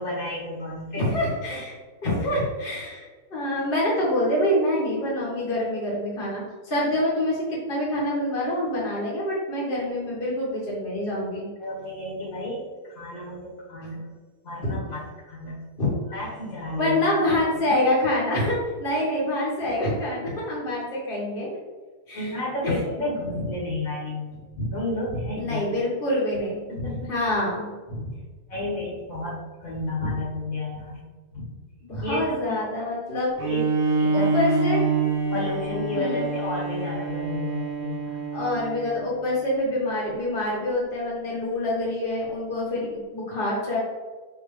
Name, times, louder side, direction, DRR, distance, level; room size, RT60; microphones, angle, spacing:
voice 1, 0.0-1.1 1.5-1.6 11.6-14.0 14.4-15.6 16.1-16.9 17.7-17.8 22.1-25.6 26.7-27.1 27.9-28.1 28.5-31.0 31.3-31.5 31.9-32.6 33.4-33.7 34.0-34.3 35.3-38.2, left 1 dB, 60° left, -5 dB, 2.3 m, -31 dB
voice 2, 1.0-1.8 2.0-11.5 14.6-14.8 15.8-16.0 16.8-21.5 22.1-22.8 25.4-26.6 27.1-27.7 31.8-33.3 34.1-34.8 35.9-36.3 38.3-43.8, left 1 dB, 35° left, -5 dB, 1.7 m, -26 dB
Bowed string instrument, 33.4-39.0, right 3 dB, 45° right, 1.0 m, -26 dB
6.2 x 4.9 x 3.3 m, 1.4 s
omnidirectional pair, 1.7 m